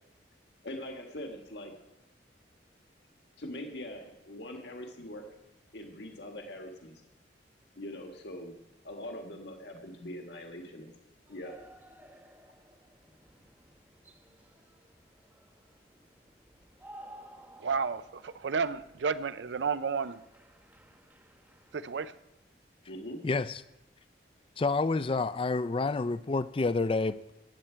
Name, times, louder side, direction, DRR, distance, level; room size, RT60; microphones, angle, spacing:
voice 1, 0.6-1.7 3.4-5.2 5.7-7.0 7.8-8.6 8.8-10.9 11.3-11.5 22.9-23.2, left 1 dB, 70° left, 1.7 m, -42 dB
sound 1, 11.3-22.1, right 1 dB, 10° right, 1.0 m, -56 dB
voice 2, 17.6-20.2 21.7-22.1, right 5 dB, 75° right, 0.5 m, -31 dB
voice 3, 23.2-23.5 24.6-27.2, left 3 dB, 30° left, 0.4 m, -28 dB
17.5 x 8.7 x 4.5 m
head